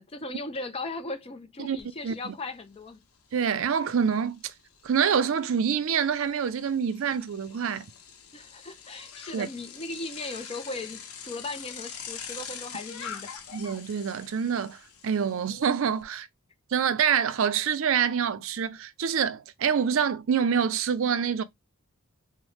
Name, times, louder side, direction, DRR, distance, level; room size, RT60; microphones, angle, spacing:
voice 1, 0.0-3.0 8.3-13.3, left 2 dB, 25° left, 0.4 m, -37 dB
Bicycle, 1.8-1.9 2.3-16.0, left 7 dB, 75° left, 0.7 m, -45 dB
voice 2, 2.0-2.3 3.3-4.5 4.8-7.8 9.3-9.5 13.5-16.3 16.7-21.4, right 7 dB, 60° right, 0.4 m, -26 dB
4.1 x 2.1 x 3.1 m
head